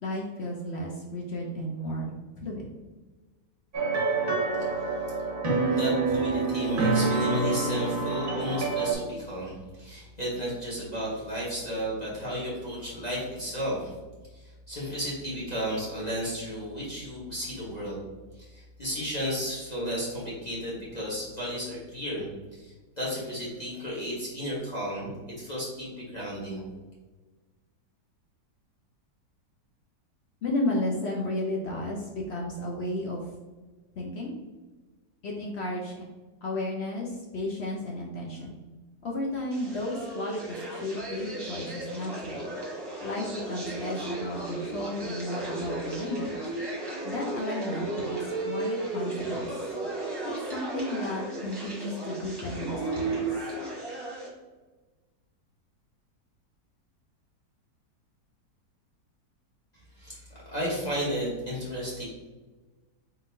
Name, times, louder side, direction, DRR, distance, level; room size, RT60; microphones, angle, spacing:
voice 1, 0.0-2.7 30.4-33.3 34.0-34.3 35.2-36.0 36.4-38.6 39.0-42.5 43.0-46.4 47.0-49.5 50.2-53.4, left 1 dB, 75° left, -1 dB, 0.6 m, -33 dB
sound 1, 3.7-8.9, right 3 dB, 45° right, 0.8 m, -27 dB
voice 2, 5.7-13.9 14.3-18.0 18.3-25.1 25.4-26.6 60.0-60.2 60.5-62.0, equal, 30° left, -6 dB, 1.0 m, -33 dB
sound 2, 39.5-54.3, right 2 dB, 15° right, 1.1 m, -35 dB
4.1 x 3.9 x 2.6 m, 1.2 s
omnidirectional pair, 1.8 m